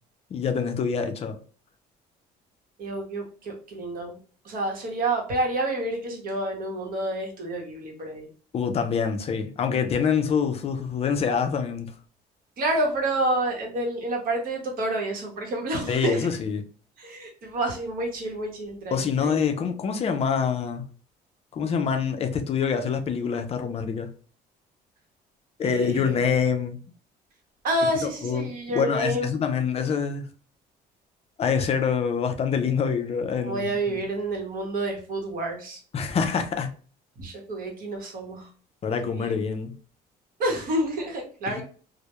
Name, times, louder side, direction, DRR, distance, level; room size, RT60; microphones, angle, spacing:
voice 1, 0.3-1.4 8.5-11.9 15.9-16.6 18.9-20.8 21.5-24.1 25.6-26.8 27.8-30.3 31.4-34.1 35.9-36.7 38.8-39.7 41.5-41.6, left 6 dB, 35° left, 0.4 m, -26 dB
voice 2, 2.8-4.1 4.4-8.3 12.6-16.3 17.0-19.4 25.6-26.2 27.6-29.3 33.4-35.8 37.2-38.5 39.1-39.4 40.4-41.6, right 1 dB, 55° right, 0.9 m, -29 dB
2.1 x 2.0 x 2.9 m
cardioid pair, 110°, 17 cm